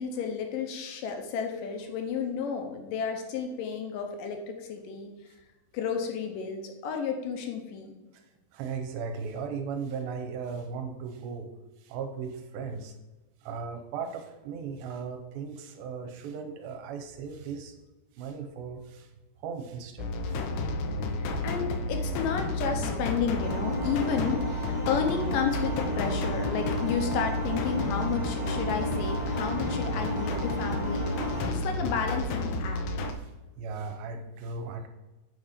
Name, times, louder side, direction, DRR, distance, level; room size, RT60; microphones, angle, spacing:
voice 1, 0.0-5.1 5.7-7.9 20.8-31.1 31.5-32.8, left 6 dB, 75° left, 4 dB, 2.2 m, -32 dB
voice 2, 8.5-11.5 11.8-12.9 13.4-17.7 18.1-19.1 19.4-20.5 31.4-31.5 33.2-34.9, right 5 dB, 75° right, 5 dB, 2.4 m, -37 dB
sound 1, 20.0-33.1, left 2 dB, 90° left, 1.7 m, -31 dB
sound 2, 23.3-31.5, left 1 dB, 40° right, 0.5 m, -34 dB
8.3 x 4.2 x 5.0 m, 1.1 s
omnidirectional pair, 4.5 m